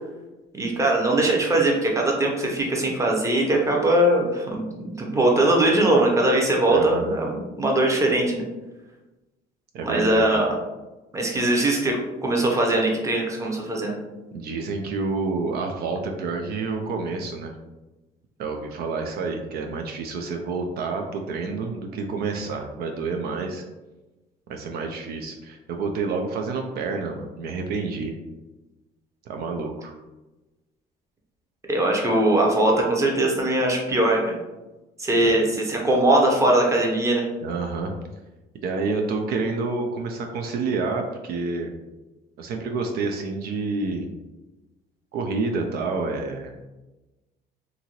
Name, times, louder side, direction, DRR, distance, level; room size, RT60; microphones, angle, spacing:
voice 1, 0.5-8.4 9.8-10.5 11.1-12.0 12.2-14.0 31.7-34.4 35.0-37.3, right 1 dB, 20° right, 0 dB, 0.7 m, -21 dB
voice 2, 6.7-7.2 9.7-10.4 14.3-17.5 18.4-23.7 24.5-28.2 29.3-29.9 35.2-35.3 37.4-37.9 38.6-41.7 42.4-44.1 45.1-46.7, right 4 dB, 65° right, 3 dB, 0.4 m, -28 dB
2.8 x 2.5 x 2.9 m, 1.1 s
cardioid pair, 110°, 17 cm